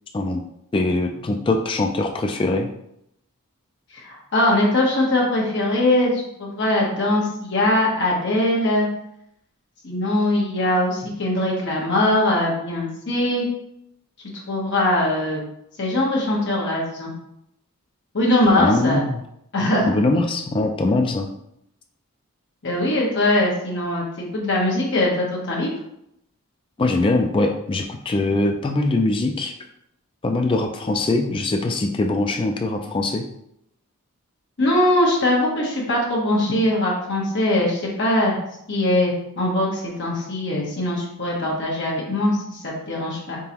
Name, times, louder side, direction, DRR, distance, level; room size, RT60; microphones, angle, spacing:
voice 1, 0.7-2.7 18.6-19.2 19.8-21.3 26.8-29.5 30.2-33.3, left 2 dB, 25° left, 3 dB, 0.3 m, -22 dB
voice 2, 3.9-8.9 9.8-13.4 14.5-15.4 15.8-17.1 18.1-19.0 19.5-19.9 22.6-25.7 34.6-38.4 38.7-43.4, left 1 dB, 55° left, -3 dB, 1.1 m, -21 dB
3.8 x 3.8 x 2.9 m, 0.76 s
head